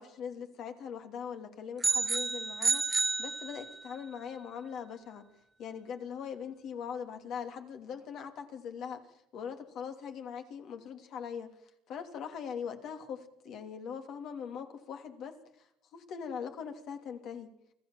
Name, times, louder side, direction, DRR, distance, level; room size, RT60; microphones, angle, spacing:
voice 1, 0.0-5.2 5.6-9.0 9.3-11.5 11.9-15.4 15.9-17.5, left 7 dB, 60° left, 6 dB, 2.9 m, -41 dB
sound 1, 1.8-4.0, right 3 dB, 20° right, 0.8 m, -30 dB
25.0 x 14.0 x 7.3 m, 0.75 s
supercardioid pair, 105°, 0 cm